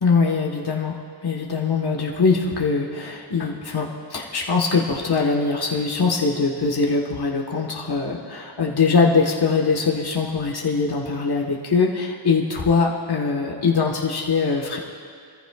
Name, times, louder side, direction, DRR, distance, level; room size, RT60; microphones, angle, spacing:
voice 1, 0.0-14.8, left 4 dB, 55° left, -1 dB, 1.5 m, -22 dB
24.0 x 14.5 x 2.4 m, 2.3 s
wide cardioid pair, 75°, 46 cm